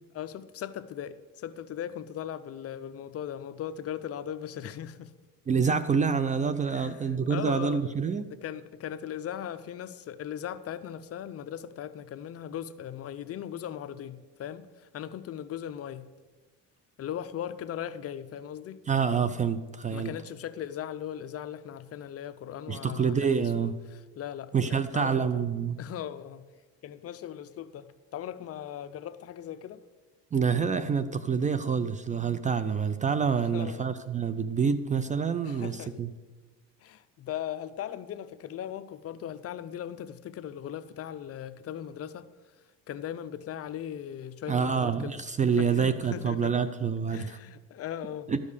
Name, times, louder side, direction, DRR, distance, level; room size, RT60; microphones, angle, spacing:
voice 1, 0.1-5.1 6.7-7.9 8.4-16.1 17.0-18.8 19.9-25.4 25.8-26.4 26.8-29.8 33.4-33.9 35.4-35.9 36.8-42.3 42.9-45.1 45.6-46.6 47.1-48.3, left 10 dB, 40° left, 0.6 m, -38 dB
voice 2, 5.5-8.3 18.9-20.1 22.7-23.8 24.5-25.8 30.3-36.1 44.5-47.4 48.3-48.4, right 6 dB, 20° right, 0.4 m, -27 dB
12.5 x 5.3 x 8.2 m
cardioid pair, 110°, 36 cm